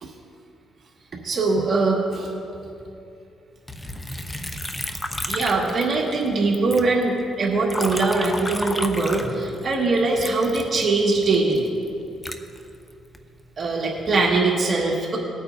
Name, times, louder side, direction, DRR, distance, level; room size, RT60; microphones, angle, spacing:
voice 1, 1.2-2.3 4.9-5.0 5.3-11.7 13.6-15.2, right 3 dB, 45° right, -2 dB, 1.8 m, -22 dB
Liquid, 3.7-6.3 6.5-9.7 10.2-13.2 13.8-14.3, left 1 dB, 10° left, 0.8 m, -32 dB
20.0 x 8.6 x 2.7 m, 2.6 s
cardioid pair, 90°, 0 cm